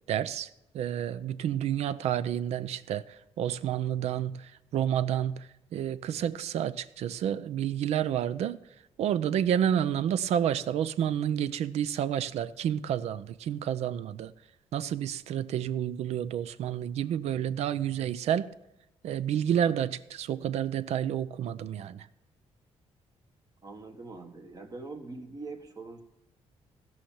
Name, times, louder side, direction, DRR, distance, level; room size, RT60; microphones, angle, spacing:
voice 1, 0.1-0.5 0.7-8.6 9.0-14.3 14.7-18.5 19.0-22.1, right 10 dB, 80° right, 0.6 m, -30 dB
voice 2, 23.6-26.0, right 3 dB, 35° right, 1.5 m, -43 dB
16.0 x 5.8 x 7.3 m
cardioid pair, 135°, 11 cm